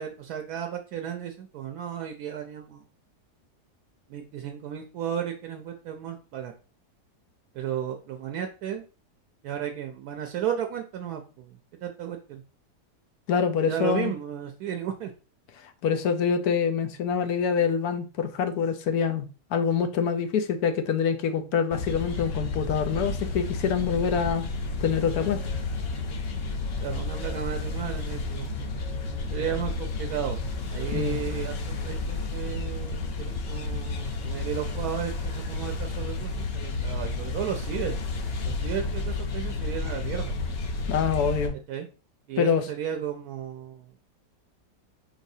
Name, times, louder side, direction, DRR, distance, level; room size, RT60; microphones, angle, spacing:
voice 1, 0.0-2.8 4.1-6.5 7.5-8.8 9.4-12.4 13.6-15.1 26.8-28.7 29.3-30.4 30.7-31.5 31.8-38.0 38.5-40.3 41.7-41.9 42.3-43.9, right 9 dB, 75° right, 5 dB, 1.0 m, -34 dB
voice 2, 13.3-14.1 15.8-24.5 24.8-25.4 30.9-31.2 40.9-41.6 42.4-42.7, left 7 dB, 75° left, 9 dB, 1.1 m, -25 dB
sound 1, 21.7-41.5, left 3 dB, 55° left, 0.7 m, -31 dB
4.9 x 4.0 x 2.7 m, 0.34 s
omnidirectional pair, 1.7 m